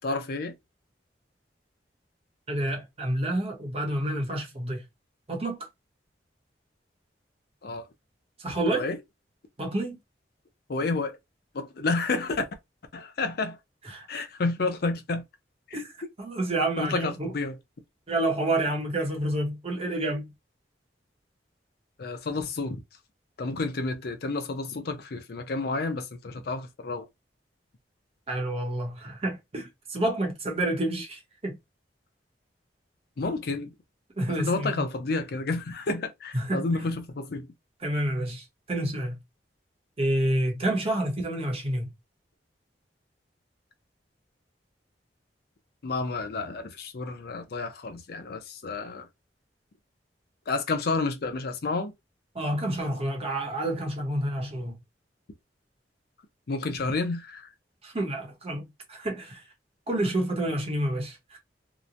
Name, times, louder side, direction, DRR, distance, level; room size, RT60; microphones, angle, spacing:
voice 1, 0.0-0.5 7.6-7.9 8.7-9.0 10.7-11.2 11.5-12.4 12.9-13.6 14.1-15.2 15.7-15.8 16.8-17.6 22.0-22.8 23.4-27.1 33.2-33.7 34.3-37.5 45.8-49.1 50.5-51.9 56.5-57.5, left 3 dB, 60° left, 0.5 m, -30 dB
voice 2, 2.5-4.8 5.3-5.7 8.4-8.9 9.6-10.0 13.9-14.3 15.7-15.9 16.2-17.3 18.1-20.3 28.3-31.6 34.2-34.8 36.3-36.6 37.8-39.2 40.0-41.9 52.3-54.7 57.8-59.4 59.9-61.4, right 1 dB, 35° right, 0.8 m, -29 dB
2.9 x 2.1 x 2.5 m
head